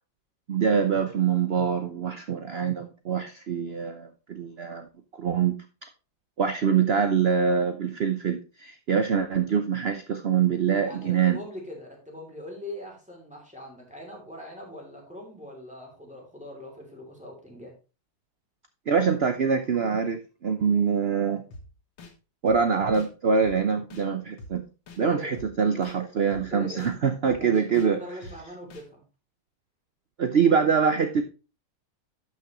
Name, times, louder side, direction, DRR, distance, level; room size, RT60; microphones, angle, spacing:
voice 1, 0.5-4.9 5.2-5.5 6.4-11.4 18.9-21.4 22.4-24.6 25.0-28.0 30.2-31.2, right 6 dB, 80° right, 8 dB, 0.5 m, -24 dB
voice 2, 10.8-17.7 25.0-25.4 26.5-26.9 27.4-29.0, left 1 dB, 5° right, -1 dB, 2.8 m, -41 dB
sound 1, 21.5-21.6 22.0-22.1 22.5-22.6 22.9-23.1 23.4-23.6 23.9-24.0 24.4-24.5 24.9-25.0 25.3-25.5 25.8-26.0 26.3-26.4 26.8-26.9 27.3-27.4 27.7-27.9 28.2-28.4 28.7-28.8, left 2 dB, 85° left, 2.2 m, -44 dB
12.0 x 6.1 x 3.1 m, 0.32 s
omnidirectional pair, 2.0 m